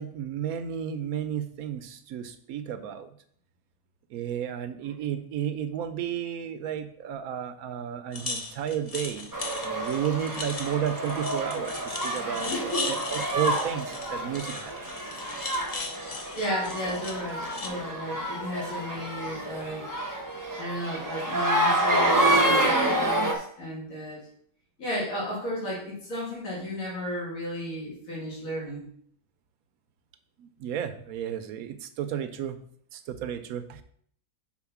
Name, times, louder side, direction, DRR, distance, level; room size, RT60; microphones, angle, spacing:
voice 1, 0.0-3.1 4.1-9.3 9.6-14.8 30.4-32.6 32.9-33.8, right 9 dB, 75° right, 10 dB, 1.1 m, -32 dB
sound 1, 8.1-17.7, left 3 dB, 40° left, 0.6 m, -38 dB
sound 2, 9.3-23.3, right 1 dB, 15° right, 0.7 m, -28 dB
voice 2, 12.3-12.9 16.4-20.1 20.6-24.3 24.8-28.9, equal, 70° left, -5 dB, 2.6 m, -34 dB
4.9 x 4.4 x 5.8 m, 0.62 s
omnidirectional pair, 1.5 m